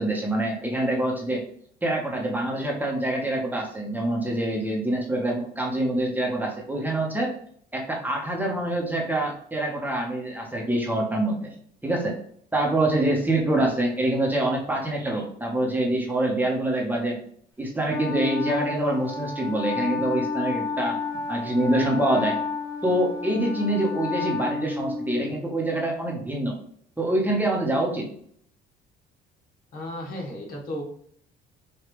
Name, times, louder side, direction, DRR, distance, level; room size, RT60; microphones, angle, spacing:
voice 1, 0.0-1.4 1.8-7.3 7.7-11.5 11.8-12.1 12.5-17.2 17.6-21.0 21.3-22.4 22.8-26.6 27.0-28.1, right 1 dB, 10° right, -1 dB, 1.2 m, -25 dB
Wind instrument woodwind instrument, 17.9-25.4, left 4 dB, 20° left, 1.4 m, -31 dB
voice 2, 29.7-30.8, left 1 dB, 60° left, -1 dB, 1.8 m, -34 dB
5.1 x 2.7 x 3.2 m, 0.62 s
cardioid pair, 110°, 17 cm